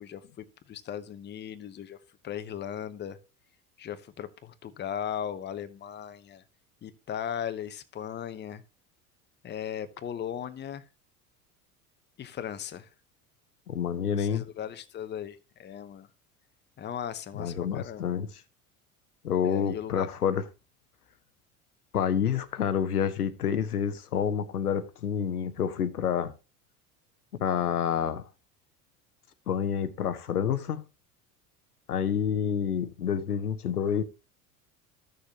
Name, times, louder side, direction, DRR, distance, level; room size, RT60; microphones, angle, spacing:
voice 1, 0.0-2.0 2.2-3.2 3.8-6.4 6.8-8.6 9.4-10.8 12.2-12.9 14.2-16.1 16.8-18.1 19.4-20.1, left 9 dB, 25° left, 0.8 m, -37 dB
voice 2, 13.7-14.4 17.3-18.3 19.2-20.4 21.9-26.3 27.4-28.2 29.5-30.8 31.9-34.0, left 8 dB, 85° left, 0.8 m, -28 dB
14.0 x 6.5 x 2.8 m
figure-of-eight pair, 75°, 45 cm